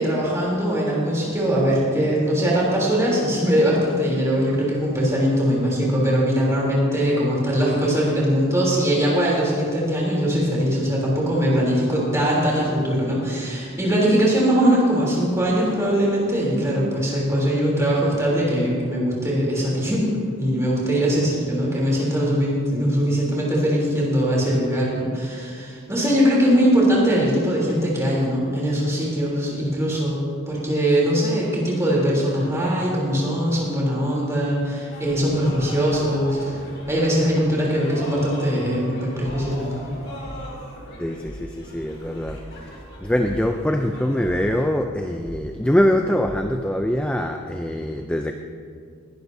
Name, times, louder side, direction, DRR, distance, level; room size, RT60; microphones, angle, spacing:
voice 1, 0.0-20.1 20.4-36.6 36.9-39.8, equal, 15° right, -5 dB, 3.2 m, -21 dB
sound 1, 34.9-44.7, left 1 dB, 50° left, 2.4 m, -39 dB
sound 2, 39.5-40.4 40.6-40.9 41.2-41.4 41.9-42.9 43.2-47.3, equal, 75° left, 3.7 m, -41 dB
voice 2, 41.0-48.3, equal, 5° left, 5 dB, 0.3 m, -23 dB
20.0 x 11.5 x 2.7 m, 2.2 s
head